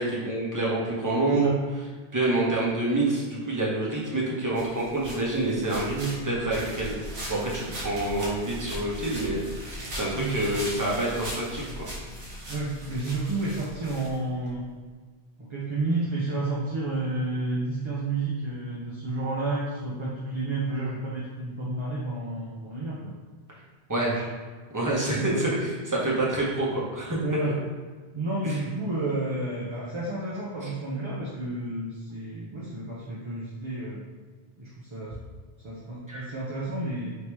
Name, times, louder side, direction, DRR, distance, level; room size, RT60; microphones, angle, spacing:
voice 1, 0.0-1.5 2.1-6.0 6.2-7.0 7.3-11.9 23.9-24.2 24.7-27.2 27.4-27.5 28.4-28.6 30.6-30.7 36.1-36.3, right 2 dB, 20° right, -6 dB, 0.9 m, -27 dB
sound 1, 4.5-14.6, equal, 60° right, 1.2 m, -39 dB
voice 2, 12.5-14.7 15.4-23.1 24.1-24.3 25.0-25.5 27.2-27.6 28.1-34.0 34.6-35.1 35.6-37.2, right 2 dB, 35° right, -6 dB, 0.5 m, -31 dB
3.5 x 2.8 x 4.5 m, 1.5 s
omnidirectional pair, 1.1 m